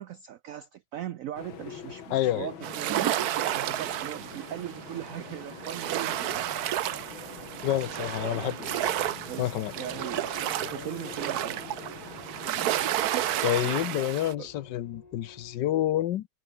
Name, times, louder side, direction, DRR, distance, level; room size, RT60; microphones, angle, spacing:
voice 1, 0.0-3.1 3.5-6.2 8.2-8.9 9.2-11.6 14.4-14.5, right 11 dB, 90° right, 0.7 m, -39 dB
sound 1, 1.3-13.7, left 7 dB, 90° left, 2.6 m, -45 dB
voice 2, 2.1-2.5 7.6-9.0 9.4-9.7 13.4-16.3, left 13 dB, 70° left, 1.4 m, -28 dB
sound 2, 2.6-14.3, right 12 dB, 65° right, 1.1 m, -31 dB
sound 3, 6.3-15.6, left 4 dB, 25° left, 1.3 m, -54 dB
omnidirectional pair, 2.1 m